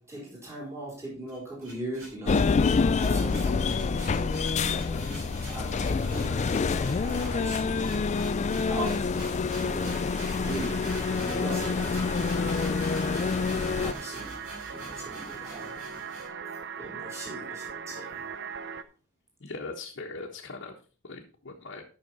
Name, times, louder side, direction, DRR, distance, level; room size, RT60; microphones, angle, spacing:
voice 1, 0.0-10.9 11.2-14.4 14.7-16.0 16.8-18.6, right 1 dB, 15° right, -5 dB, 4.0 m, -40 dB
sound 1, 1.3-16.3, right 1 dB, 70° right, 5.6 m, -44 dB
sound 2, 2.2-13.9, left 4 dB, 35° left, 0.3 m, -27 dB
sound 3, 9.5-18.8, right 6 dB, 55° right, 0.6 m, -40 dB
voice 2, 19.4-20.8 21.0-21.8, left 3 dB, 55° left, -2 dB, 1.3 m, -40 dB
12.5 x 6.1 x 4.1 m, 0.37 s
head